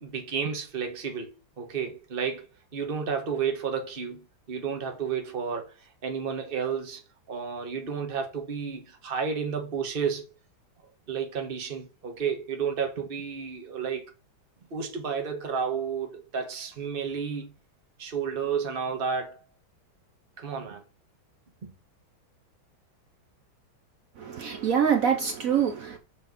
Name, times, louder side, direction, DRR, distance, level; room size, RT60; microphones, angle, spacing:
voice 1, 0.0-2.5 2.7-5.8 6.0-7.0 7.3-10.3 11.1-14.0 14.7-17.5 18.0-19.4 20.4-20.8 21.6-21.7, right 6 dB, 30° right, 1.5 m, -31 dB
voice 2, 24.2-26.0, right 8 dB, 60° right, 0.9 m, -25 dB
6.6 x 4.4 x 5.0 m
omnidirectional pair, 2.2 m